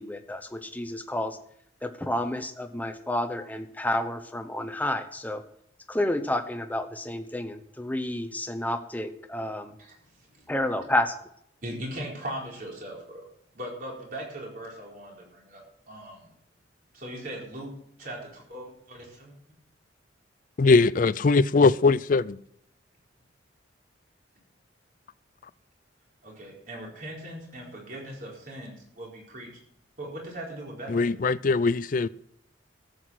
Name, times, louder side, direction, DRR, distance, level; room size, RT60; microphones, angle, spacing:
voice 1, 0.0-1.4 1.8-5.4 5.9-9.8 10.5-11.1, left 1 dB, 10° left, 0.9 m, -30 dB
voice 2, 9.8-10.5 11.6-13.3 13.5-16.3 16.9-17.7 18.0-19.3 26.2-29.5 30.0-31.2, right 1 dB, 45° right, 4.4 m, -39 dB
voice 3, 20.6-22.4 30.9-32.1, left 4 dB, 45° left, 0.4 m, -21 dB
14.0 x 8.1 x 6.3 m
head